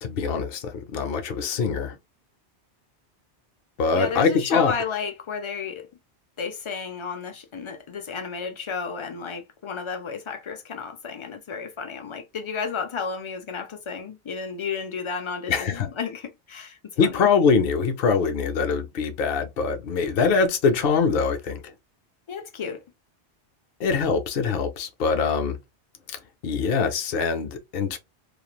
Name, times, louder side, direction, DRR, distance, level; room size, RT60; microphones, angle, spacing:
voice 1, 0.0-2.0 3.8-4.7 15.5-15.9 17.0-21.7 23.8-25.6 26.1-28.0, left 5 dB, 60° left, 0.8 m, -23 dB
voice 2, 3.9-5.9 6.4-17.3 22.3-22.8, left 5 dB, 40° left, 0.4 m, -32 dB
3.1 x 2.4 x 2.3 m
omnidirectional pair, 1.2 m